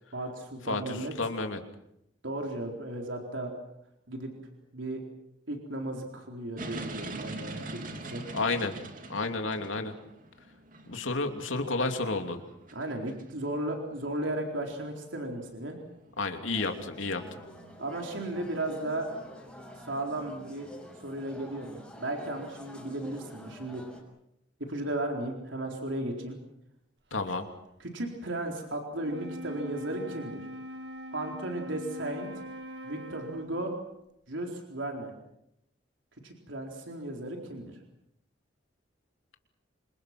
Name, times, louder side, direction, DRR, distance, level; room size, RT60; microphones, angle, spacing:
voice 1, 0.1-1.1 2.2-3.5 4.1-4.3 4.7-5.0 5.5-8.2 12.7-15.8 17.8-19.1 19.8-20.7 21.0-23.8 24.6-26.4 27.8-30.4 31.1-32.4 32.8-33.7 34.3-35.1 36.2-37.7, right 1 dB, 80° right, 2 dB, 4.2 m, -35 dB
voice 2, 0.7-1.6 8.3-8.7 9.1-9.9 10.9-12.4 16.2-17.4 27.1-27.5, left 3 dB, 85° left, 5 dB, 3.0 m, -31 dB
sound 1, 6.6-18.8, right 2 dB, 45° right, 2.8 m, -45 dB
sound 2, 16.5-24.0, equal, 5° left, 6.3 m, -48 dB
Wind instrument woodwind instrument, 28.9-33.7, equal, 60° right, 1.9 m, -42 dB
28.5 x 26.0 x 6.1 m, 0.80 s
head